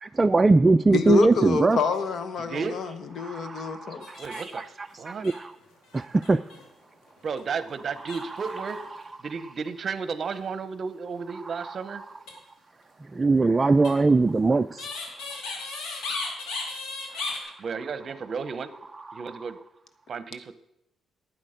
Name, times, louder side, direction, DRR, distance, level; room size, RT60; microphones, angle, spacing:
voice 1, 0.0-1.8 3.2-5.5 5.9-6.4 8.0-9.0 11.4-12.1 13.0-14.9 17.1-17.7 19.0-19.5, right 3 dB, 25° right, 9 dB, 0.3 m, -23 dB
voice 2, 0.9-4.0, left 5 dB, 60° left, 10 dB, 1.1 m, -27 dB
voice 3, 2.4-2.8 4.2-5.3 7.2-8.8 9.2-12.0 17.6-18.7 19.1-19.6 20.1-20.5, right 5 dB, 50° right, 12 dB, 0.8 m, -33 dB
sound 1, 4.0-4.7 4.9-5.0 5.2-6.6 7.2-7.4 8.1-8.9 12.1-12.3 13.8-17.4, left 3 dB, 90° left, 2.6 m, -35 dB
12.0 x 9.1 x 5.1 m, 0.84 s
cardioid pair, 90°, 0 cm